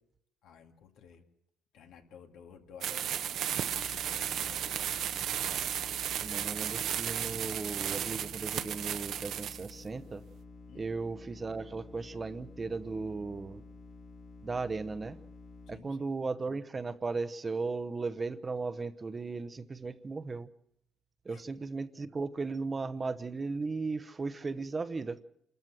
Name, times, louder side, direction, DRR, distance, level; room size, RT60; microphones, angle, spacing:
voice 1, 0.4-1.2 1.7-4.8 10.7-10.9 15.7-16.1 21.3-21.4, left 7 dB, 75° left, 5 dB, 2.3 m, -53 dB
sound 1, 2.8-9.7, right 10 dB, 65° right, 0.9 m, -34 dB
sound 2, 3.7-15.8, left 3 dB, 40° left, 2.1 m, -51 dB
voice 2, 6.2-10.2 10.7-13.6 14.4-15.2 15.7-20.5 21.2-25.2, right 4 dB, 25° right, 12 dB, 0.8 m, -36 dB
27.0 x 13.5 x 7.7 m, 0.77 s
cardioid pair, 105°, 0 cm